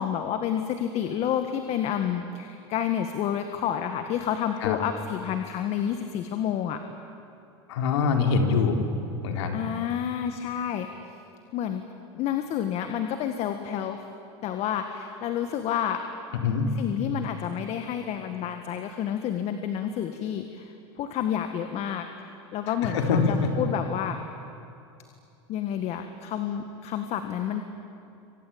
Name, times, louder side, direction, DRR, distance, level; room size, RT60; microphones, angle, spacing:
voice 1, 0.0-6.8 9.5-10.9 11.5-11.8 12.1-14.0 14.4-16.0 16.8-22.1 22.5-24.2 25.5-27.6, left 9 dB, 45° left, 7 dB, 1.8 m, -29 dB
voice 2, 7.7-8.8 9.2-9.6 16.4-16.7 22.8-23.3, left 5 dB, 75° left, 3 dB, 3.9 m, -24 dB
27.0 x 24.5 x 8.9 m, 2.7 s
supercardioid pair, 110°, 15 cm